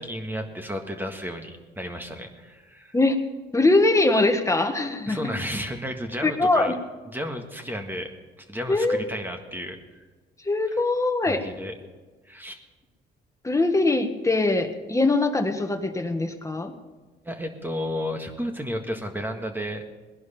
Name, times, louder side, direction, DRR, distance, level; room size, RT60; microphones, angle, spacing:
voice 1, 0.0-2.9 5.1-6.7 7.1-8.1 8.4-10.0 10.7-10.8 11.3-11.7 12.2-12.6 17.2-19.8, equal, 10° right, 4 dB, 1.6 m, -33 dB
voice 2, 3.5-5.3 6.2-6.7 8.7-9.0 10.4-11.4 13.4-16.7, left 2 dB, 15° left, 6 dB, 1.6 m, -22 dB
19.0 x 11.0 x 4.3 m, 1.3 s
cardioid pair, 90°, 20 cm